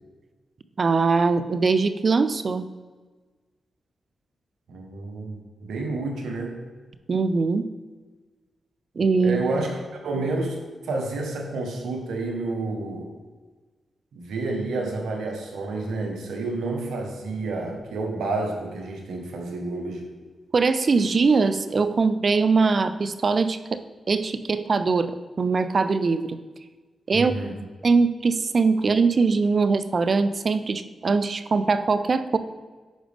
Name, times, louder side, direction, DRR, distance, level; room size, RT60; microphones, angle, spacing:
voice 1, 0.8-2.7 7.1-7.7 9.0-9.7 20.5-25.1 25.4-26.4 27.1-27.3 27.8-32.4, right 4 dB, 55° right, 12 dB, 0.5 m, -22 dB
voice 2, 4.7-6.6 9.2-13.1 14.1-20.1 27.1-27.6, right 2 dB, 85° right, 2 dB, 1.2 m, -30 dB
10.0 x 5.1 x 3.5 m, 1.3 s
cardioid pair, 50°, 0 cm